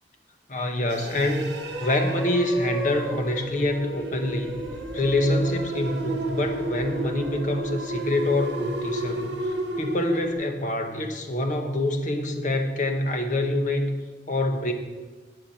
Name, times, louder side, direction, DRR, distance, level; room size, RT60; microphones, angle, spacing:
voice 1, 0.5-1.5 1.8-4.6 4.9-13.9 14.3-14.7, left 1 dB, 45° left, 5 dB, 1.2 m, -26 dB
sound 1, 0.9-10.3, right 2 dB, 80° right, 1.3 m, -33 dB
sound 2, 1.2-9.3, right 1 dB, 5° left, 1.8 m, -37 dB
15.0 x 8.8 x 4.3 m, 1.3 s
head